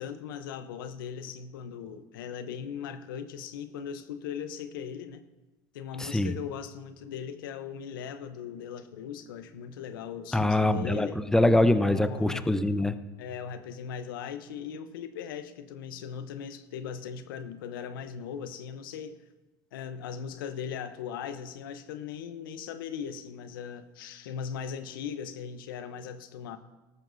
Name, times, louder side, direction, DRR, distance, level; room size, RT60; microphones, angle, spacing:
voice 1, 0.0-5.2 5.7-11.2 11.8-12.5 13.2-19.2 19.7-26.6, left 7 dB, 85° left, 11 dB, 0.8 m, -39 dB
voice 2, 6.0-6.4 10.3-12.9, left 1 dB, 5° left, 11 dB, 0.8 m, -24 dB
18.5 x 13.5 x 2.7 m, 1.1 s
hypercardioid pair, 80°, 11 cm